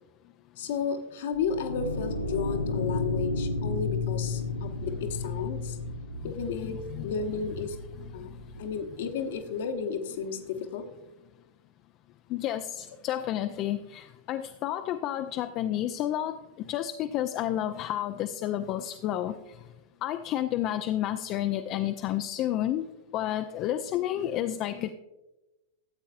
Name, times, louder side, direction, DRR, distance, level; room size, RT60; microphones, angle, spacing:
voice 1, 0.6-5.8 6.2-7.8 8.1-8.3 8.6-10.8, left 6 dB, 55° left, 6 dB, 0.9 m, -33 dB
sound 1, 1.3-8.6, left 3 dB, 80° left, 0.6 m, -33 dB
voice 2, 6.6-7.1 12.3-19.4 20.0-22.8 23.1-24.9, left 12 dB, 40° left, 8 dB, 0.4 m, -31 dB
14.0 x 8.1 x 2.5 m, 1.0 s
figure-of-eight pair, 90°, 0 cm